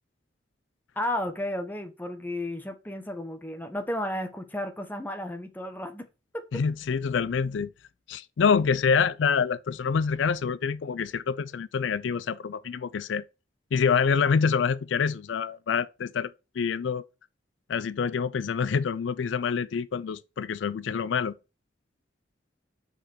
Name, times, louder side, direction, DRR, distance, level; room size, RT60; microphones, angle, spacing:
voice 1, 1.0-6.1 6.3-6.4, left 1 dB, 10° left, 1.0 m, -33 dB
voice 2, 6.5-7.7 8.1-13.2 13.7-16.3 16.6-17.0 17.7-21.3, left 6 dB, 80° left, 0.4 m, -26 dB
5.1 x 4.9 x 5.9 m
head